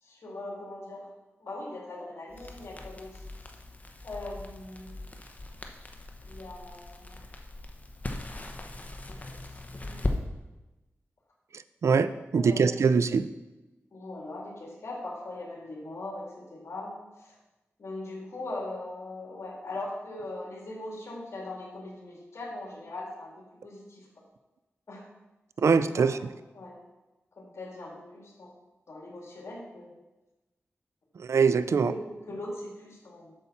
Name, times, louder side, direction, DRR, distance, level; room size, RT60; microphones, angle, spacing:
voice 1, 0.0-1.1 1.4-3.2 4.0-5.0 6.2-7.2 9.0-9.5 9.8-10.1 12.4-13.0 13.9-17.4 17.8-24.1 24.9-25.0 25.6-26.8 27.3-28.5 28.9-30.0 31.8-33.3, left 2 dB, 65° left, -2 dB, 2.6 m, -40 dB
Crackle, 2.3-10.2, left 2 dB, 30° left, 0.9 m, -39 dB
voice 2, 11.8-13.3 25.6-26.1 31.2-31.9, right 5 dB, 70° right, 14 dB, 0.4 m, -23 dB
8.0 x 7.0 x 4.2 m, 1.1 s
cardioid pair, 70°, 5 cm